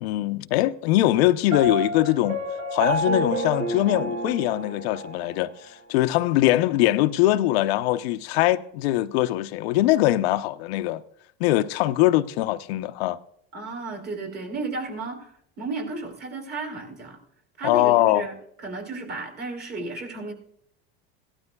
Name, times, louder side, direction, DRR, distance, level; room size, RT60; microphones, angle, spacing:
voice 1, 0.0-2.4 2.7-11.0 11.4-13.2 17.6-18.3, left 15 dB, 85° left, 0.7 m, -22 dB
Piano, 1.5-5.4, right 1 dB, 85° right, 4.9 m, -29 dB
voice 2, 13.5-15.3 15.6-17.2 17.6-20.3, right 3 dB, 35° right, 3.4 m, -33 dB
17.0 x 12.5 x 2.3 m
supercardioid pair, 125°, 30 cm